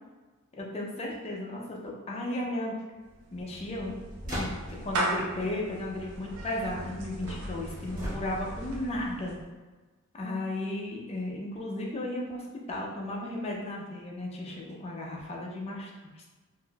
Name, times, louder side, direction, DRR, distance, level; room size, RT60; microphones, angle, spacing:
voice 1, 0.5-2.7 3.3-3.9 4.3-4.5 4.8-9.3 10.1-15.9 16.1-16.2, left 1 dB, 30° left, -2 dB, 0.5 m, -35 dB
Clapping / Meow, 3.0-9.5, right 1 dB, 85° right, 0.5 m, -37 dB
sound 1, 4.2-4.9 8.0-8.7, equal, 40° right, 1.5 m, -36 dB
3.6 x 2.6 x 2.3 m, 1.3 s
head